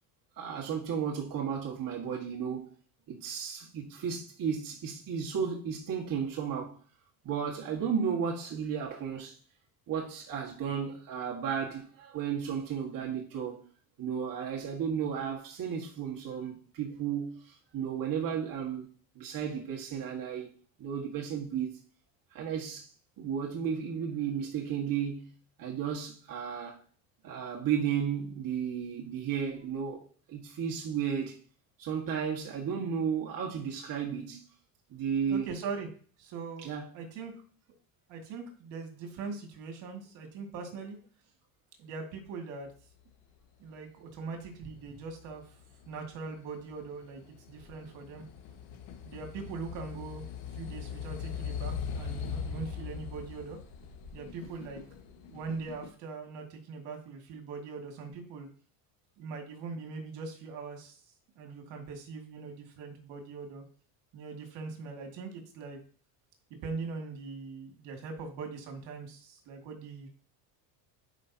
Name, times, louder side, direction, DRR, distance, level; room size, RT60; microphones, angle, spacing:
voice 1, 0.4-2.7 3.1-6.7 7.2-9.4 9.9-13.6 14.0-18.9 19.1-20.5 20.8-21.8 22.3-22.9 23.2-25.3 25.6-26.8 27.2-31.4 31.8-34.4 34.9-35.5 36.6-36.9 44.9-45.0, right 7 dB, 45° right, 1.6 m, -34 dB
voice 2, 35.3-35.9 36.2-37.3 38.1-41.0 41.8-42.7 43.6-45.4 45.9-47.2 47.5-48.2 49.0-50.2 50.5-53.6 54.1-54.8 55.3-58.5 59.2-61.0 61.4-63.6 64.1-65.8 66.6-70.1, right 4 dB, 70° right, 2.2 m, -41 dB
sound 1, 44.5-55.9, left 7 dB, 90° left, 1.7 m, -41 dB
10.5 x 5.1 x 2.8 m
supercardioid pair, 100°, 45 cm